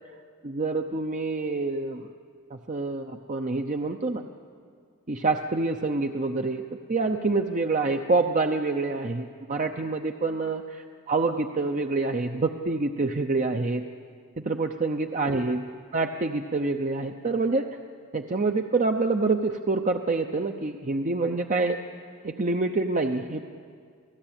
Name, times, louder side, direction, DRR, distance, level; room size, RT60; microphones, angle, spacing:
voice 1, 0.4-2.0 2.5-4.2 5.1-13.8 14.4-15.6 15.9-17.6 18.1-21.8 22.2-23.5, right 3 dB, 35° right, 4 dB, 0.8 m, -27 dB
28.0 x 18.0 x 8.9 m, 2.1 s
head